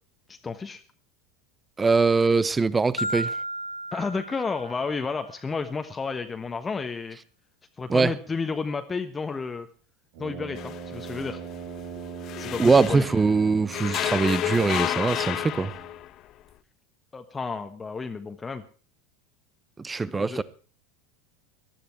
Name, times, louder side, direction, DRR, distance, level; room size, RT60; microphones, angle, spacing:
voice 1, 0.3-0.8 3.9-7.2 7.8-9.7 10.2-11.4 12.4-13.0 17.1-18.6 20.0-20.4, left 4 dB, 20° left, 1.2 m, -31 dB
voice 2, 1.8-3.3 7.9-8.1 12.6-15.7 19.8-20.4, right 4 dB, 15° right, 0.9 m, -22 dB
Marimba xylophone, 3.0-5.2, right 1 dB, 85° left, 1.0 m, -34 dB
Brass instrument, 10.1-16.0, right 7 dB, 60° right, 3.0 m, -40 dB
sound 1, 10.6-13.3 13.7-16.2, left 13 dB, 45° left, 0.7 m, -31 dB
19.0 x 12.5 x 4.5 m
figure-of-eight pair, 75°, 0 cm